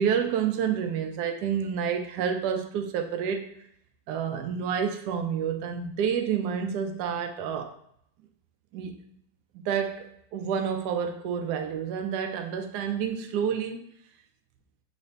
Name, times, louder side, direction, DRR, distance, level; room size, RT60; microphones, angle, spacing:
voice 1, 0.0-3.5 4.1-7.7 8.7-8.9 9.5-13.8, right 7 dB, 85° right, 4 dB, 0.9 m, -29 dB
5.8 x 2.6 x 3.2 m, 0.70 s
omnidirectional pair, 2.3 m